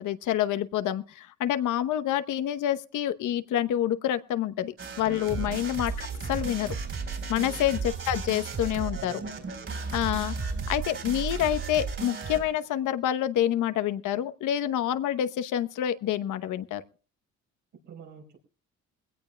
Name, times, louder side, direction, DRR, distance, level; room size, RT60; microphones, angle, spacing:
voice 1, 0.0-6.7 7.3-9.1 9.9-16.8, left 11 dB, 80° left, 1.0 m, -28 dB
sound 1, 4.8-12.6, right 4 dB, 45° right, 4.1 m, -34 dB
voice 2, 9.0-9.3 17.9-18.4, right 6 dB, 75° right, 5.1 m, -45 dB
22.0 x 16.5 x 2.2 m
cardioid pair, 90°, 30 cm